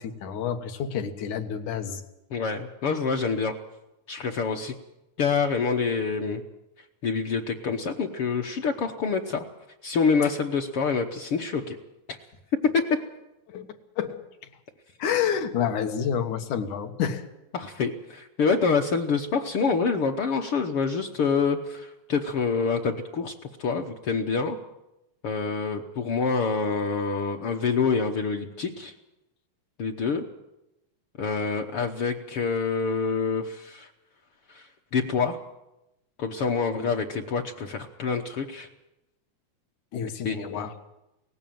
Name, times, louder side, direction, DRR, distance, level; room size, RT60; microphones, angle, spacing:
voice 1, 0.0-2.0 10.2-10.3 13.5-14.2 15.0-17.2 36.8-36.9 39.9-40.7, left 8 dB, 80° left, 7 dB, 2.8 m, -29 dB
voice 2, 2.3-3.5 4.1-4.7 5.2-6.4 7.0-9.4 9.8-11.8 12.1-12.2 12.7-12.9 17.5-23.3 23.6-24.6 25.2-28.9 29.8-30.2 31.2-33.9 34.5-35.4 36.2-38.7 40.2-40.7, left 5 dB, 60° left, 2 dB, 1.6 m, -26 dB
18.5 x 15.5 x 9.2 m, 0.93 s
omnidirectional pair, 3.4 m